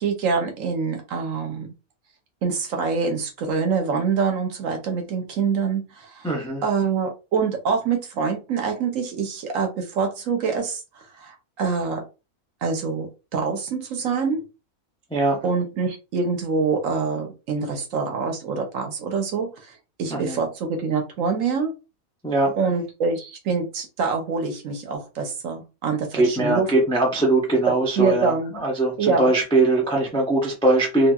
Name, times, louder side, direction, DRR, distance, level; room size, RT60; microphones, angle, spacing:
voice 1, 0.0-1.7 2.4-6.3 6.6-10.8 11.2-12.0 12.6-14.4 15.4-19.5 20.0-21.7 22.6-26.7 28.0-28.5 29.0-29.3, right 5 dB, 65° right, 4 dB, 1.0 m, -25 dB
voice 2, 6.2-6.6 15.1-15.4 20.1-20.4 22.2-22.5 26.1-31.1, right 2 dB, 10° left, -1 dB, 0.3 m, -21 dB
2.8 x 2.6 x 2.2 m, 0.29 s
omnidirectional pair, 1.6 m